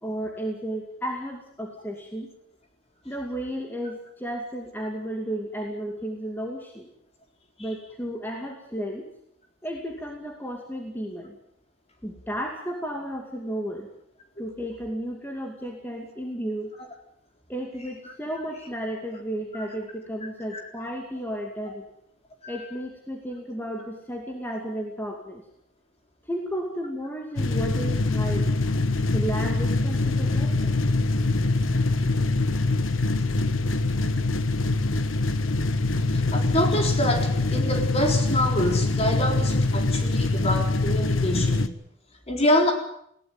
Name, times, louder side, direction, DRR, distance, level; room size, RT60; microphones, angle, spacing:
voice 1, 0.0-2.3 3.0-6.9 7.6-9.1 9.6-11.4 12.0-13.9 14.4-16.7 17.5-21.9 22.5-25.4 26.3-28.7 29.1-30.7, equal, 10° left, 1 dB, 2.5 m, -33 dB
sound 1, 27.4-41.7, left 2 dB, 90° left, 1.2 m, -24 dB
voice 2, 36.1-41.8 42.3-42.7, left 1 dB, 30° left, 3 dB, 4.0 m, -26 dB
20.5 x 17.0 x 9.1 m, 0.73 s
head